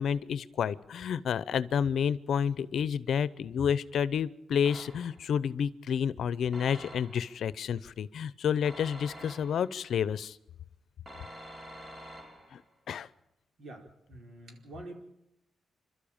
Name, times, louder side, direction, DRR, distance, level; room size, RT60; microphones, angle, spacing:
voice 1, 0.0-10.4 12.5-12.6 12.9-13.1, left 8 dB, 75° left, 17 dB, 0.7 m, -30 dB
sound 1, 4.7-5.3 6.5-7.4 8.6-9.8 11.1-12.7, equal, 25° right, 3.3 m, -47 dB
voice 2, 13.6-14.9, right 2 dB, 55° right, 3 dB, 4.7 m, -46 dB
28.0 x 13.0 x 8.9 m, 0.86 s
cardioid pair, 110°, 0 cm